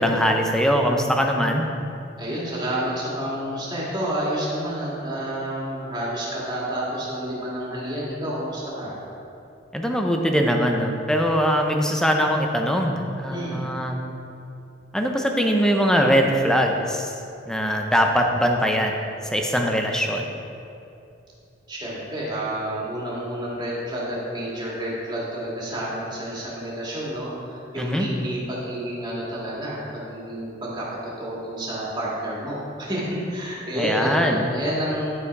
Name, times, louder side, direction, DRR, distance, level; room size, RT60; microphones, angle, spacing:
voice 1, 0.0-1.7 9.7-14.0 14.9-17.1 17.5-18.9 19.3-20.3 27.8-28.1 33.8-34.4, equal, 5° left, 2 dB, 0.6 m, -21 dB
voice 2, 2.2-8.9 13.3-13.7 21.7-35.1, right 1 dB, 25° right, -7 dB, 2.2 m, -29 dB
11.0 x 5.6 x 4.7 m, 2.7 s
head